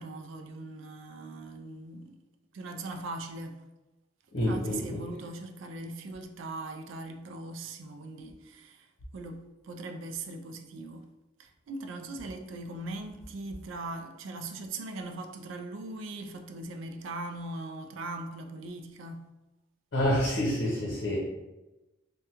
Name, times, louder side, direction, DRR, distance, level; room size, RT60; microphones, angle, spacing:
voice 1, 0.0-2.2 2.5-3.6 4.4-8.9 9.1-11.1 11.4-19.2, right 2 dB, 80° right, 0.4 m, -40 dB
voice 2, 4.3-5.0 19.9-21.2, left 1 dB, 65° left, 0.7 m, -28 dB
3.4 x 2.2 x 2.8 m
head